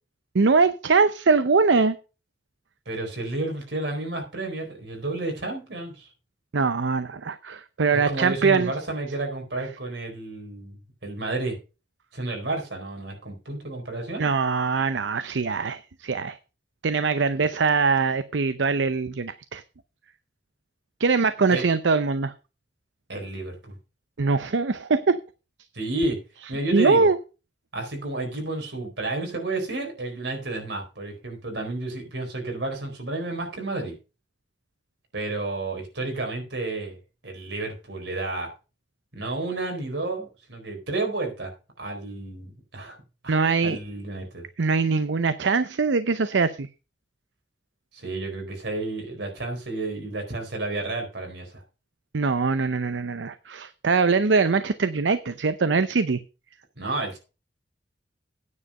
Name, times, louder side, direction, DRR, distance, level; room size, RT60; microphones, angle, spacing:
voice 1, 0.3-2.0 6.5-8.7 14.2-16.4 16.8-19.6 21.0-22.3 24.2-25.2 26.7-27.2 43.3-43.8 44.6-46.7 52.1-56.2, right 4 dB, 90° right, 0.6 m, -22 dB
voice 2, 2.9-6.1 7.9-10.8 11.0-11.6 12.1-14.3 17.3-17.5 21.5-21.6 23.1-23.7 25.7-26.2 26.5-27.1 27.7-33.9 35.1-37.0 37.2-38.5 39.1-41.5 41.8-43.0 43.2-43.4 43.6-44.4 47.9-51.6 56.8-57.2, right 2 dB, 70° right, 4.3 m, -31 dB
9.6 x 7.6 x 5.4 m
head